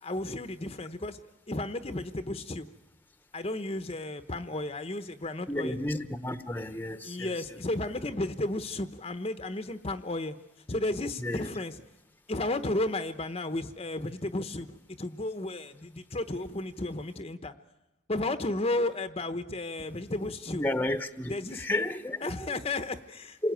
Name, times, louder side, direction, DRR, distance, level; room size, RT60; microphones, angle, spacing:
voice 1, 0.0-1.2 1.5-2.7 3.3-5.8 7.0-10.3 10.7-11.7 12.3-17.5 18.1-20.6 21.3-21.6 22.2-23.5, left 2 dB, 30° left, 0.9 m, -33 dB
voice 2, 5.5-7.4 11.2-11.5 20.5-22.6 23.4-23.5, left 1 dB, 10° left, 1.0 m, -32 dB
28.0 x 21.5 x 9.3 m
head